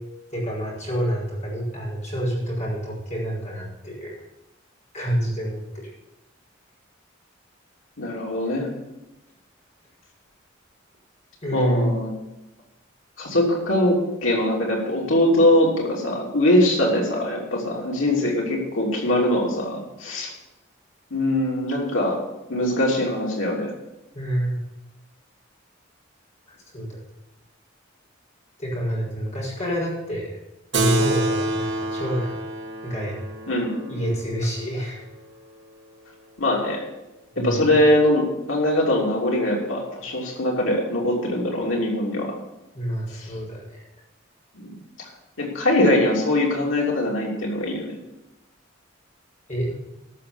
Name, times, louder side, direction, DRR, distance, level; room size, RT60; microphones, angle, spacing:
voice 1, 0.3-4.2 4.9-5.9 11.4-11.9 24.1-24.6 26.5-27.0 28.6-30.3 30.7-32.4 32.8-33.2 33.9-35.0 37.3-37.7 42.7-43.8 49.5-49.7, equal, 35° left, -5 dB, 5.5 m, -27 dB
voice 2, 8.0-8.7 11.5-12.1 13.2-20.3 21.1-22.2 22.5-23.7 33.5-34.0 36.4-36.8 37.4-38.2 38.5-42.3 43.2-43.3 44.5-44.8 45.4-47.9, left 1 dB, 85° left, -2 dB, 3.0 m, -22 dB
Keyboard (musical), 30.7-35.6, right 1 dB, 60° right, 1.4 m, -28 dB
13.0 x 6.7 x 7.3 m, 0.97 s
head